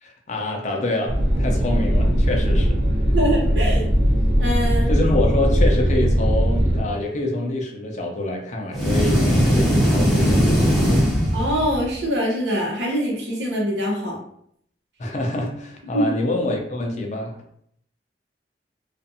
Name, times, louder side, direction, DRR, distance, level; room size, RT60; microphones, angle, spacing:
voice 1, 0.0-2.8 4.9-10.8 15.0-17.4, left 2 dB, 45° left, 1 dB, 0.5 m, -26 dB
sound 1, 1.1-6.8, equal, 40° right, 0.8 m, -19 dB
voice 2, 3.1-3.8 4.4-4.9 11.3-14.2 15.9-16.1, equal, 80° right, -2 dB, 0.9 m, -23 dB
sound 2, 8.7-11.9, equal, ahead, 0.6 m, -19 dB
2.4 x 2.4 x 2.6 m, 0.69 s
head